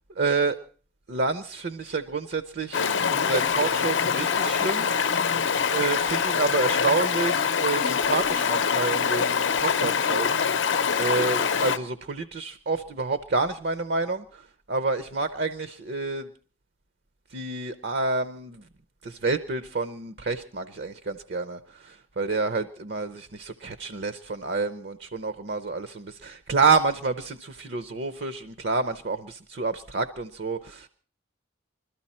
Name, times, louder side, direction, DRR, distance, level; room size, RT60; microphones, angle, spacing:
voice 1, 0.2-0.6 1.1-2.8 3.1-4.9 5.7-10.4 11.0-16.3 17.3-18.6 19.0-30.9, right 3 dB, 55° right, 12 dB, 0.6 m, -28 dB
Stream, 2.7-11.8, left 6 dB, 65° left, 0.7 m, -24 dB
21.5 x 13.5 x 4.3 m, 0.41 s
head